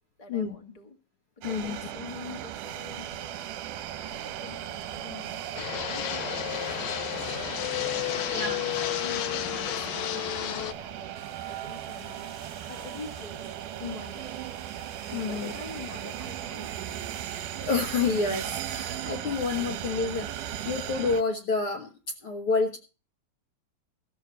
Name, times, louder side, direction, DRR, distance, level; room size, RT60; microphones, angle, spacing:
voice 1, 0.2-1.0 1.4-3.4 4.0-11.2 11.5-12.4 12.7-14.4 15.2-16.8, left 4 dB, 20° left, 3 dB, 0.9 m, -45 dB
voice 2, 1.4-1.8 8.3-8.6 15.1-15.5 17.6-21.9 22.2-22.8, left 4 dB, 55° left, 3 dB, 1.6 m, -29 dB
sound 1, 1.4-21.2, right 11 dB, 75° right, 2.2 m, -37 dB
Fixed-wing aircraft airplane, 5.6-10.7, left 13 dB, 80° left, 2.5 m, -31 dB
sound 2, 11.2-19.6, right 4 dB, 30° right, 2.1 m, -51 dB
15.0 x 6.8 x 6.7 m, 0.33 s
omnidirectional pair, 4.0 m